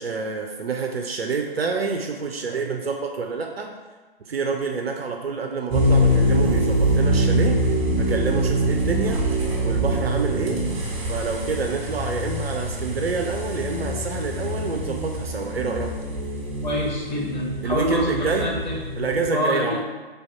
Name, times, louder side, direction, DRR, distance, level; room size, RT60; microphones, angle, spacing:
voice 1, 0.0-3.7 4.3-7.7 8.0-9.2 9.6-10.6 11.1-15.9 17.6-18.5 19.0-19.8, right 4 dB, 80° right, 2 dB, 0.6 m, -27 dB
sound 1, 5.7-19.3, equal, 30° right, 1.0 m, -24 dB
voice 2, 16.6-19.8, left 1 dB, 45° left, -4 dB, 1.2 m, -26 dB
3.4 x 2.7 x 4.4 m, 1.3 s
figure-of-eight pair, 140°, 30 cm